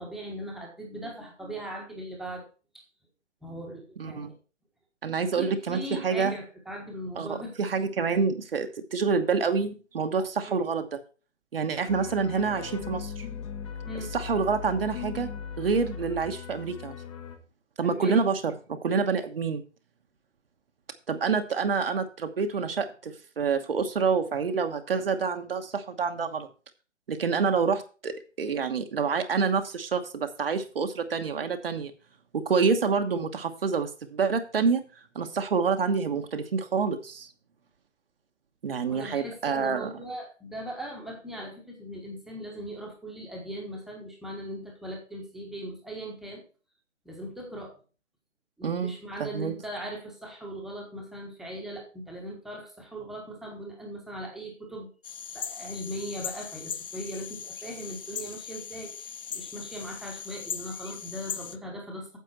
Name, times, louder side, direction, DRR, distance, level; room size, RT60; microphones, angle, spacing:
voice 1, 0.0-2.5 2.7-2.8 3.4-4.3 5.2-7.5 10.5-10.7 13.8-14.1 17.8-18.2 22.5-22.7 23.7-23.8 38.9-46.4 47.0-47.8 48.6-54.9 55.3-62.2, right 1 dB, ahead, -1 dB, 1.4 m, -39 dB
voice 2, 4.0-4.3 5.0-6.4 7.2-11.0 11.5-13.3 14.1-15.3 15.6-17.0 17.8-19.6 21.1-26.5 27.1-31.9 32.3-34.8 35.1-37.3 38.6-39.9 48.6-48.9 49.2-49.5, right 5 dB, 50° right, 6 dB, 1.2 m, -27 dB
sound 1, 11.9-17.4, left 7 dB, 25° left, 1.2 m, -38 dB
sound 2, 55.0-61.6, left 7 dB, 50° left, 0.7 m, -39 dB
9.4 x 7.4 x 4.4 m, 0.35 s
figure-of-eight pair, 140°, 37 cm